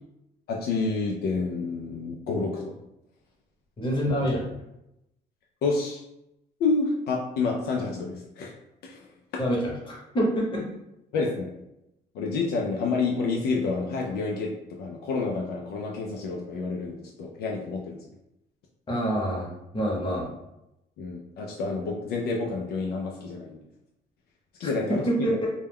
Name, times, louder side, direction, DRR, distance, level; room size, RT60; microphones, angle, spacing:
voice 1, 0.5-2.7 5.6-6.0 6.6-8.5 8.8-9.0 11.1-11.5 12.1-14.5 14.8-18.0 21.0-23.6 24.6-25.3, left 4 dB, 70° left, -1 dB, 0.4 m, -29 dB
voice 2, 3.8-4.5 9.4-10.7 18.9-20.3 25.1-25.5, equal, 30° left, -3 dB, 0.9 m, -26 dB
2.2 x 2.1 x 3.4 m, 0.88 s
cardioid pair, 110°, 17 cm